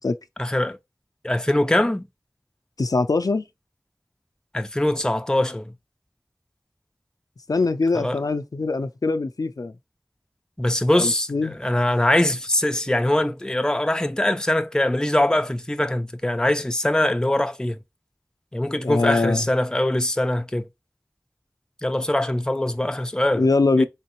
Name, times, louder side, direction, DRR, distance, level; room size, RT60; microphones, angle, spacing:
voice 1, 0.4-0.8 1.2-2.0 4.5-5.7 7.9-8.2 10.6-17.8 18.5-20.7 21.8-23.5 23.8-23.9, left 1 dB, 10° left, 0.4 m, -22 dB
voice 2, 2.8-3.4 7.5-9.7 11.0-11.6 18.8-19.4 23.4-23.9, left 3 dB, 80° left, 0.3 m, -22 dB
3.7 x 3.1 x 3.0 m
wide cardioid pair, 45°, 6 cm